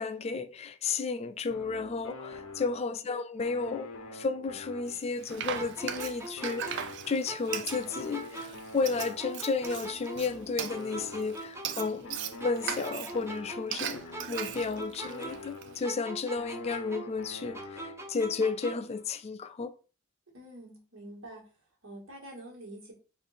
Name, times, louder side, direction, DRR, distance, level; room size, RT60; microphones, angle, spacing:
voice 1, 0.0-14.0 14.3-19.7, left 4 dB, 30° left, 0.3 m, -33 dB
sound 1, 1.5-3.0 3.4-7.3 7.7-11.6 12.0-16.0 16.4-18.2, left 2 dB, 85° left, 0.6 m, -46 dB
voice 2, 2.6-2.9 20.3-21.5 21.8-22.9, right 1 dB, 75° right, 1.7 m, -47 dB
Frying (food), 4.9-15.8, right 9 dB, 60° right, 0.4 m, -39 dB
sound 2, 5.5-8.7 9.0-12.1 12.4-15.6 15.8-19.0, right 2 dB, 15° right, 0.6 m, -43 dB
3.7 x 2.6 x 4.1 m
head